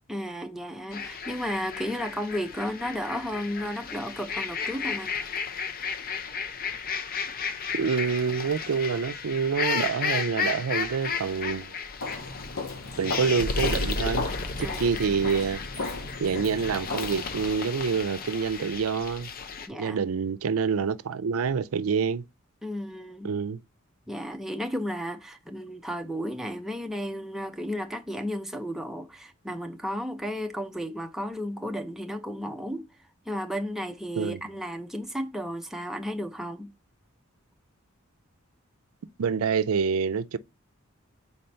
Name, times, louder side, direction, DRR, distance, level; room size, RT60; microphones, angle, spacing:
voice 1, 0.1-5.1 14.6-14.8 19.7-20.0 22.6-23.3 24.1-32.8 33.3-36.7, equal, ahead, 0.6 m, -33 dB
sound 1, 0.9-19.7, left 5 dB, 45° left, 0.7 m, -33 dB
voice 2, 7.7-11.8 13.0-14.3 14.6-15.6 16.2-19.3 19.7-22.2 23.2-23.6 34.2-34.4 39.2-40.4, right 6 dB, 85° right, 0.4 m, -27 dB
Walk footsteps, 12.0-17.5, left 3 dB, 65° left, 1.5 m, -36 dB
4.4 x 4.2 x 5.3 m
head